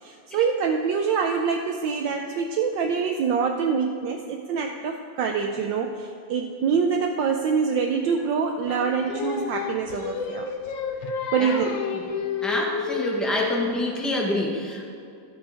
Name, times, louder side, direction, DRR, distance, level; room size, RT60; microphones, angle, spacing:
voice 1, 0.0-10.5 11.0-11.8, right 6 dB, 75° right, 3 dB, 1.2 m, -25 dB
Singing, 8.7-13.9, left 6 dB, 75° left, 1.5 m, -30 dB
voice 2, 12.4-14.9, left 1 dB, ahead, -1 dB, 0.8 m, -27 dB
14.5 x 6.1 x 4.9 m, 2.4 s
omnidirectional pair, 2.2 m